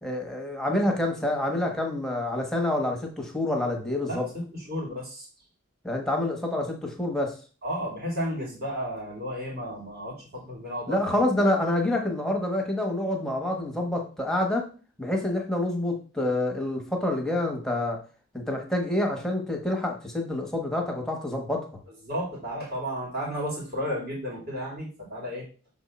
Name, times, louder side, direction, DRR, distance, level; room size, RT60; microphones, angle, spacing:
voice 1, 0.0-4.3 5.8-7.4 10.9-14.7 15.0-18.0 18.3-21.7, left 1 dB, ahead, 1 dB, 1.1 m, -27 dB
voice 2, 4.7-5.3 7.6-11.2 22.0-25.5, equal, 45° right, -4 dB, 2.4 m, -33 dB
6.2 x 3.6 x 4.2 m, 0.37 s
head